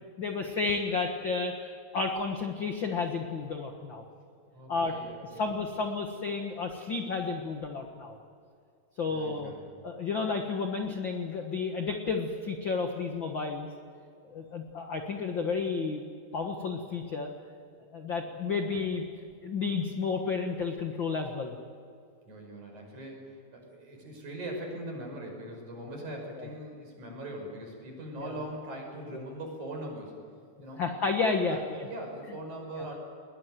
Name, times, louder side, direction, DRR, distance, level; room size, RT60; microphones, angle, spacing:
voice 1, 0.2-4.0 4.7-5.0 5.4-8.2 9.0-9.5 9.8-13.7 14.3-16.0 16.3-17.3 17.9-19.0 19.4-21.5 26.4-26.5 28.2-28.4 29.1-29.2 30.8-31.9 32.8-32.9, left 4 dB, 60° left, 3 dB, 1.2 m, -31 dB
voice 2, 4.5-5.6 9.1-9.7 22.3-30.2 30.6-30.8 31.5-33.0, right 1 dB, 50° right, 1 dB, 7.0 m, -41 dB
22.0 x 21.0 x 9.3 m, 2.3 s
omnidirectional pair, 4.6 m